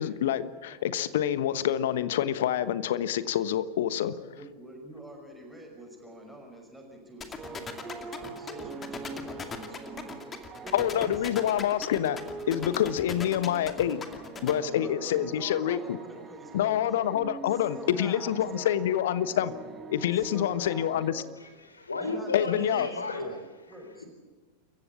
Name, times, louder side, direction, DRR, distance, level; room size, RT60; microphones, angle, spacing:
voice 1, 0.0-4.2 10.7-14.0 14.4-16.0 16.5-19.5 19.9-21.2 22.3-22.9, left 10 dB, 55° left, 15 dB, 1.2 m, -27 dB
voice 2, 4.3-11.5 13.1-13.2 14.5-17.0 17.5-18.8 20.1-21.3 22.0-23.4 23.7-24.1, right 1 dB, 5° right, 1 dB, 5.8 m, -46 dB
sound 1, 7.2-14.5, left 6 dB, 20° left, 2.4 m, -38 dB
sound 2, 7.4-21.1, right 4 dB, 20° right, 1.9 m, -44 dB
voice 3, 21.4-23.4, left 2 dB, 75° left, 8 dB, 3.4 m, -34 dB
28.0 x 15.5 x 8.6 m, 1.4 s
figure-of-eight pair, 90°, 0 cm